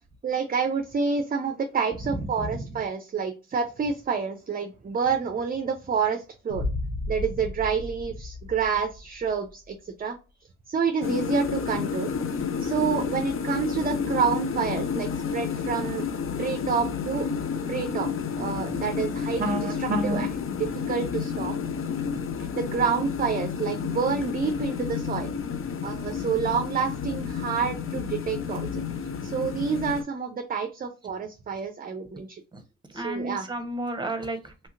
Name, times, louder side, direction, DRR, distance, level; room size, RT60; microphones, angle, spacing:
voice 1, 0.2-6.6 7.1-10.2 10.7-12.1 12.6-16.1 16.4-17.3 17.7-18.1 18.4-21.5 22.4-25.3 25.8-28.8 29.2-32.4 32.9-33.5, right 6 dB, 30° right, 6 dB, 0.5 m, -28 dB
Boom, 6.5-9.5, left 2 dB, 85° left, 0.7 m, -33 dB
sound 1, 11.0-30.0, left 6 dB, 45° left, 0.5 m, -30 dB
voice 2, 18.5-18.8 32.9-34.7, right 1 dB, 15° right, 8 dB, 0.9 m, -33 dB
3.1 x 2.7 x 2.5 m, 0.32 s
cardioid pair, 70°, 29 cm